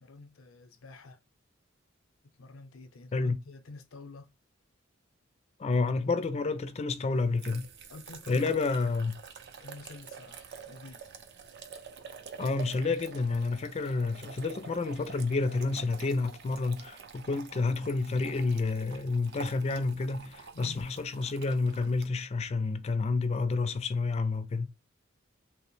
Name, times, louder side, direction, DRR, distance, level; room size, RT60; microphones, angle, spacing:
voice 1, 0.0-1.2 2.2-4.3 7.9-8.6 9.6-11.0 20.5-20.8, left 3 dB, 90° left, 0.6 m, -48 dB
voice 2, 5.6-7.6 8.3-9.1 12.4-24.7, left 3 dB, 30° left, 0.3 m, -29 dB
sound 1, 7.1-22.1, right 6 dB, 55° right, 0.4 m, -48 dB
2.8 x 2.0 x 3.0 m
head